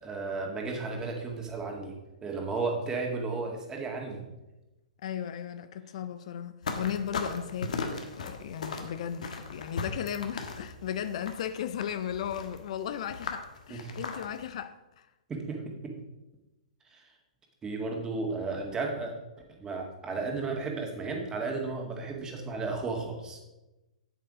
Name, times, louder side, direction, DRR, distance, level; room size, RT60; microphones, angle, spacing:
voice 1, 0.0-2.0 2.2-4.2 13.7-13.9 15.3-16.0 16.9-17.0 17.6-19.1 19.6-23.4, right 3 dB, 15° right, 1.9 m, -34 dB
voice 2, 5.0-15.1, left 9 dB, 55° left, 0.5 m, -36 dB
sound 1, 6.6-14.5, left 4 dB, 70° left, 1.4 m, -38 dB
8.2 x 7.7 x 4.9 m
hypercardioid pair, 125°, 4 cm